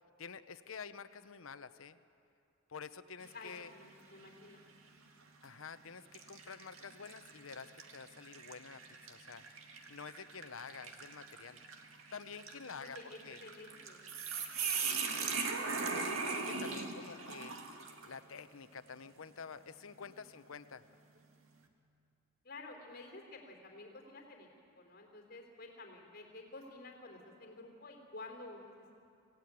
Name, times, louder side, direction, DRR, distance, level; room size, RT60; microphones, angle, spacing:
voice 1, 0.2-2.0 2.7-3.7 5.4-9.4 9.9-11.6 12.1-13.4 15.0-15.4 15.9-17.6 18.1-20.8, left 5 dB, 80° left, 12 dB, 0.9 m, -49 dB
sound 1, 3.2-3.7 4.2-4.3 5.3-5.5 6.1-18.2, right 5 dB, 85° right, 2.1 m, -40 dB
voice 2, 3.3-4.6 12.8-14.0 20.0-20.2 22.4-24.5 24.8-28.9, left 2 dB, 50° left, 2 dB, 3.6 m, -51 dB
26.5 x 16.5 x 9.4 m, 2.6 s
head